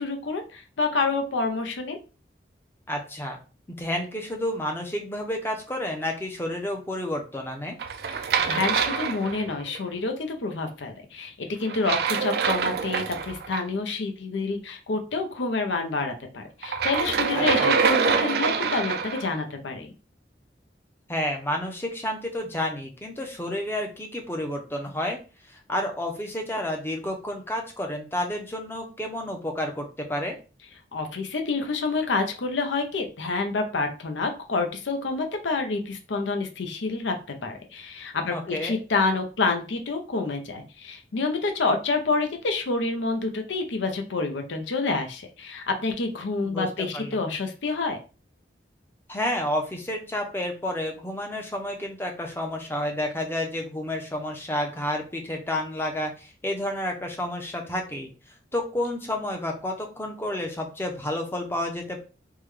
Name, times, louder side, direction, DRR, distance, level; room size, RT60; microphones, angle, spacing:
voice 1, 0.0-2.0 8.1-19.9 30.9-37.1 37.4-48.0, left 3 dB, 90° left, 5 dB, 0.6 m, -28 dB
voice 2, 2.9-3.4 3.8-7.8 17.3-17.7 21.1-25.2 25.5-30.4 38.3-38.8 46.4-47.2 49.1-58.1 58.5-62.0, left 1 dB, 15° left, 3 dB, 0.5 m, -30 dB
sound 1, 7.8-9.8 11.7-13.6 16.6-19.3, right 6 dB, 60° right, 0.3 m, -25 dB
3.5 x 2.2 x 3.1 m, 0.34 s
head